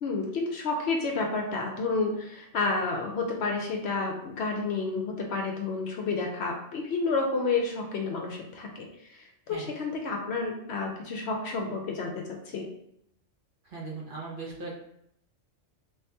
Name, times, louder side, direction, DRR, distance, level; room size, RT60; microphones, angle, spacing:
voice 1, 0.0-12.7, left 3 dB, 65° left, 1 dB, 0.8 m, -30 dB
voice 2, 13.6-14.8, right 3 dB, 50° right, -4 dB, 0.8 m, -38 dB
3.1 x 2.8 x 3.3 m, 0.76 s
omnidirectional pair, 1.3 m